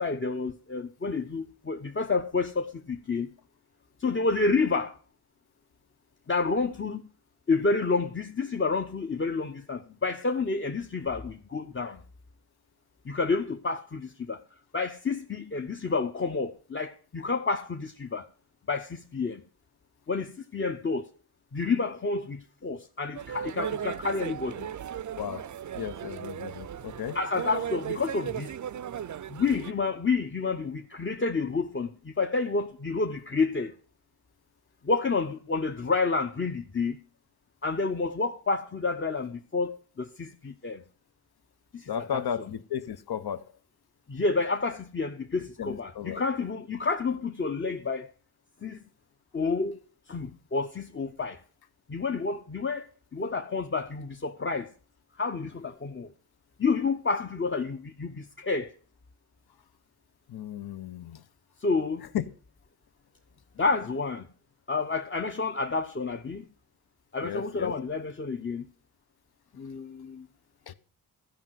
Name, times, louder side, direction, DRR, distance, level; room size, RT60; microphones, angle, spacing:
voice 1, 0.0-3.3 4.0-5.0 6.3-7.0 7.5-12.0 13.0-14.4 14.7-18.3 18.7-19.4 20.1-21.1 21.5-24.7 27.1-28.5 29.3-33.7 34.8-37.0 37.6-40.8 41.7-42.2 44.1-48.1 48.6-48.8 49.3-49.8 50.1-51.4 51.9-54.7 55.2-56.1 56.6-58.7 61.6-62.1 63.6-64.3 64.7-66.5 67.1-68.7 69.5-70.3, left 4 dB, 30° left, 0.8 m, -29 dB
sound 1, 23.1-29.7, right 9 dB, 50° right, 0.5 m, -36 dB
voice 2, 25.2-27.2 41.9-43.5 45.6-46.2 60.3-61.2 62.1-62.2 67.2-67.7 70.7-70.8, left 9 dB, 70° left, 0.9 m, -34 dB
13.5 x 5.5 x 7.6 m
cardioid pair, 70°, 40 cm